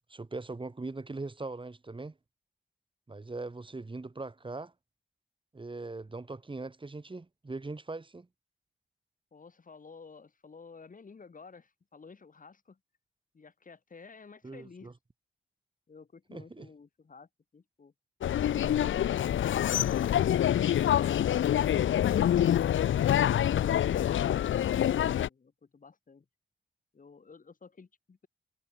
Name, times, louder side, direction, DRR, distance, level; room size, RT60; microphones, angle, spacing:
voice 1, 0.1-2.1 3.1-4.7 5.5-8.3 14.4-14.9 16.3-16.7, right 3 dB, 25° right, 6.7 m, -40 dB
voice 2, 9.3-12.8 13.3-15.0 15.9-17.9 24.9-26.3 26.9-28.3, left 5 dB, 45° left, 7.9 m, -53 dB
sound 1, 18.2-25.3, left 11 dB, 85° left, 0.6 m, -26 dB
wide cardioid pair, 120°, 20 cm